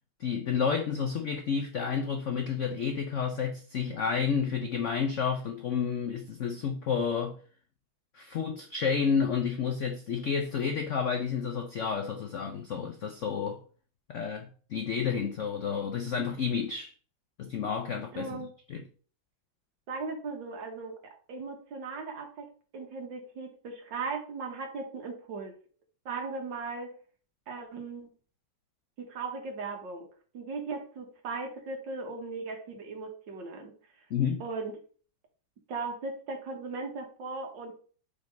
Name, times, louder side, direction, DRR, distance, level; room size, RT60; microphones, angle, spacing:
voice 1, 0.2-7.4 8.1-13.6 14.1-16.9 17.4-18.8 34.1-34.4, left 6 dB, 70° left, 0.7 m, -30 dB
voice 2, 18.1-18.5 19.9-22.5 22.7-25.5 26.1-27.0 27.5-28.1 29.0-30.1 30.3-33.7 34.4-34.8 35.7-37.7, right 4 dB, 70° right, 2.0 m, -38 dB
5.0 x 4.0 x 5.2 m
omnidirectional pair, 2.1 m